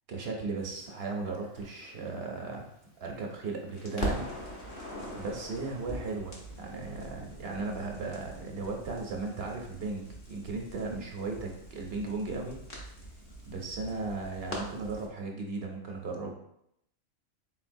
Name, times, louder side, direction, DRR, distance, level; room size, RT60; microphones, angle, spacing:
voice 1, 0.1-2.7 3.0-4.3 4.5-4.7 5.1-12.6 13.5-16.3, right 3 dB, 55° right, 1 dB, 0.8 m, -36 dB
Crackle, 1.2-3.4 3.7-15.1, equal, 45° left, 1.1 m, -42 dB
4.1 x 4.0 x 2.6 m, 0.75 s
omnidirectional pair, 1.4 m